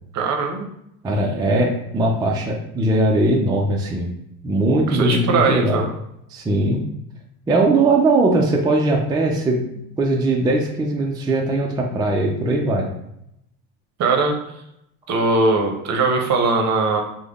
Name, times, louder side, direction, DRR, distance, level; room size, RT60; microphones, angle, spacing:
voice 1, 0.1-0.7 4.9-5.9 14.0-14.3 15.1-17.0, right 3 dB, 50° right, 3 dB, 0.7 m, -20 dB
voice 2, 1.0-4.1 4.4-5.8 6.3-6.8 7.5-9.6 10.0-12.9, right 2 dB, 10° right, 0 dB, 0.3 m, -19 dB
3.3 x 2.1 x 3.5 m, 0.78 s
cardioid pair, 110°, 36 cm